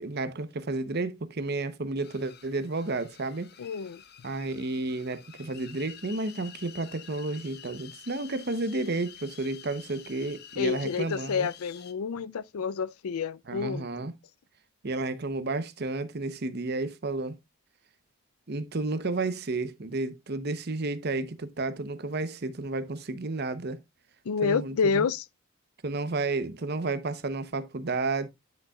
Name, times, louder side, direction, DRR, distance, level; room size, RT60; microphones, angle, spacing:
voice 1, 0.0-3.5 4.2-11.5 13.5-14.1 14.8-17.4 18.5-23.8 24.4-25.0 25.8-28.3, right 2 dB, 50° right, 0.8 m, -32 dB
sound 1, 2.0-11.9, left 9 dB, 50° left, 0.7 m, -49 dB
voice 2, 3.6-4.0 10.6-13.9 24.3-25.2, left 5 dB, 80° left, 0.4 m, -29 dB
10.0 x 6.3 x 2.3 m
head